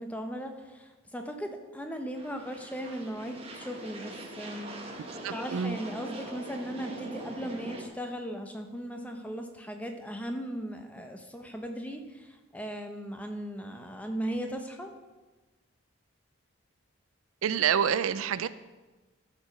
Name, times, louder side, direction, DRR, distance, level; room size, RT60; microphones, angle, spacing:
voice 1, 0.0-14.9, equal, 5° left, 4 dB, 0.8 m, -38 dB
sound 1, 2.1-7.9, right 1 dB, 30° right, 1.2 m, -42 dB
voice 2, 5.2-5.8 17.4-18.5, right 8 dB, 80° right, 15 dB, 0.4 m, -27 dB
13.0 x 5.0 x 5.5 m, 1.2 s
head